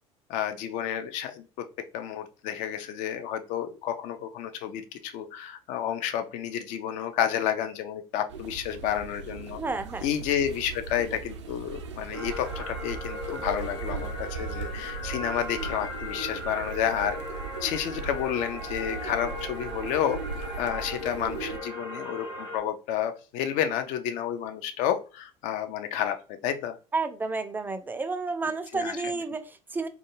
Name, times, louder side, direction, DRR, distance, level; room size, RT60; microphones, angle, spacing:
voice 1, 0.3-1.7 1.9-9.6 10.0-17.2 17.6-20.2 20.6-26.8 28.7-29.2, left 9 dB, 55° left, 0.4 m, -30 dB
sound 1, 8.3-21.6, right 5 dB, 75° right, 0.4 m, -38 dB
voice 2, 9.6-10.1 26.9-29.9, right 3 dB, 15° right, 0.4 m, -31 dB
sound 2, 12.1-22.6, left 1 dB, 90° left, 0.7 m, -38 dB
2.4 x 2.2 x 2.9 m
figure-of-eight pair, 60°, 15 cm